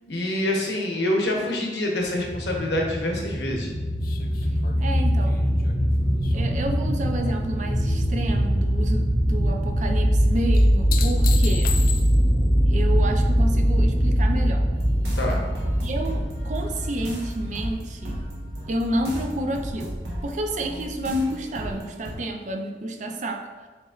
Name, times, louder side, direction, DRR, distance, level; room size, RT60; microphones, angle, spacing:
voice 1, 0.1-3.7 15.1-15.4, left 1 dB, 70° left, 0 dB, 0.9 m, -26 dB
sound 1, 2.2-19.2, equal, ahead, 0.8 m, -22 dB
sound 2, 4.0-7.5 7.8-8.5 10.5-12.4 15.0-15.1, left 8 dB, 55° left, 0.4 m, -36 dB
voice 2, 4.8-5.4 6.3-11.7 12.7-14.7 15.8-18.2 18.7-23.7, right 1 dB, 45° right, 4 dB, 0.4 m, -30 dB
sound 3, 14.7-22.1, equal, 70° right, 1.1 m, -35 dB
7.0 x 3.0 x 2.4 m, 1.4 s
head